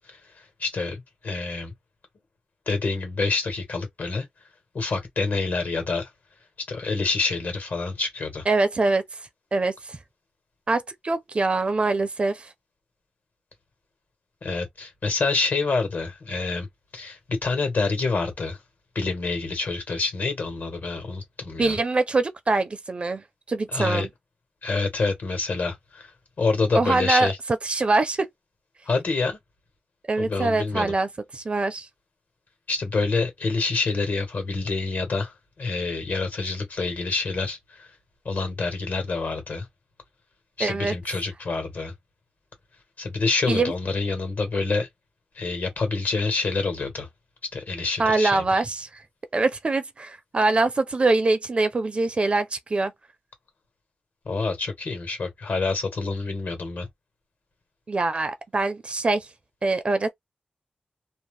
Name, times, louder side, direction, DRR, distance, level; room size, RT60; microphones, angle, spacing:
voice 1, 0.1-1.7 2.7-4.3 4.7-6.1 6.7-8.4 14.4-16.7 16.9-18.6 18.9-21.8 23.7-24.1 24.6-26.1 26.4-27.4 28.9-29.4 30.2-30.9 32.7-37.9 38.2-39.7 40.6-41.9 43.0-44.9 45.3-47.1 47.5-48.4 54.2-56.9, left 3 dB, 70° left, 1.3 m, -27 dB
voice 2, 8.5-9.0 9.5-10.0 10.7-12.5 21.6-24.1 26.7-27.3 27.6-28.3 30.1-31.9 40.6-40.9 43.5-43.7 48.0-49.0 49.3-52.9 57.9-59.3 59.6-60.1, right 3 dB, 35° right, 0.5 m, -24 dB
2.6 x 2.1 x 3.2 m
wide cardioid pair, 155°, 3 cm